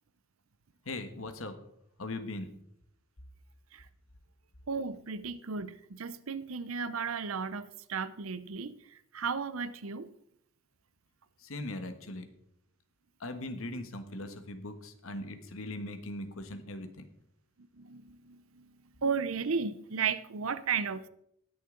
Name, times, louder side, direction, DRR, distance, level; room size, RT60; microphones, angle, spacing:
voice 1, 0.8-1.5 2.0-2.5 11.4-12.3 13.2-17.1, left 2 dB, 75° left, 9 dB, 1.4 m, -40 dB
voice 2, 4.7-8.8 9.1-10.1 17.8-18.7 19.0-21.1, right 5 dB, 80° right, 14 dB, 0.7 m, -34 dB
19.5 x 6.7 x 3.9 m, 0.72 s
head